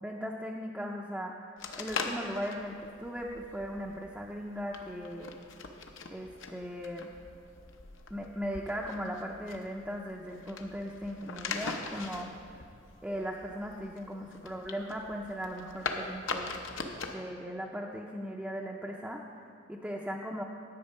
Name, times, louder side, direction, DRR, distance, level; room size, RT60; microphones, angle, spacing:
voice 1, 0.0-1.5 1.8-5.3 6.1-7.1 8.1-12.3 13.0-16.5 17.1-19.2 19.7-20.4, equal, 5° right, -2 dB, 0.5 m, -38 dB
sound 1, 1.6-17.1, left 4 dB, 70° left, 0.8 m, -42 dB
10.5 x 7.9 x 5.4 m, 2.3 s
head